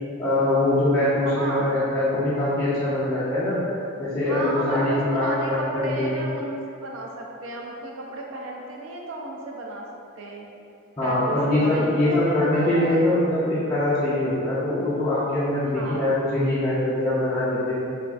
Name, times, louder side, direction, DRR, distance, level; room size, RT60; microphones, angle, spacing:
voice 1, 0.2-3.6 4.0-6.2 11.0-17.7, left 1 dB, 20° left, -13 dB, 0.4 m, -23 dB
voice 2, 1.4-1.8 4.3-6.6 6.8-9.9 10.2-10.5 11.0-13.1 15.6-16.1, right 2 dB, 65° right, -1 dB, 0.3 m, -33 dB
3.4 x 2.3 x 2.3 m, 2.7 s
head